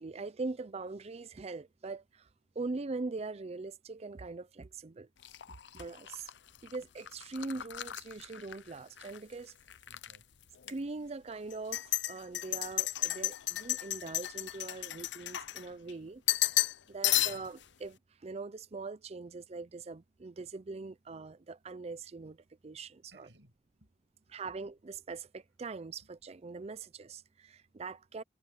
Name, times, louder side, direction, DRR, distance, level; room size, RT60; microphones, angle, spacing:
voice 1, 0.0-2.3 2.6-5.1 5.7-6.3 6.6-9.5 10.7-16.2 16.9-22.4 22.6-23.3 24.3-28.2, right 3 dB, 35° right, 0.5 m, -42 dB
sound 1, 5.2-9.2 9.5-10.2 10.6-10.7 11.5-15.9 16.3-16.8 17.0-17.6, left 15 dB, 80° left, 0.6 m, -33 dB
voice 2, 9.9-10.4 16.9-17.4 23.1-23.9 24.3-24.4 26.0-26.1, right 1 dB, 80° right, 7.9 m, -63 dB
head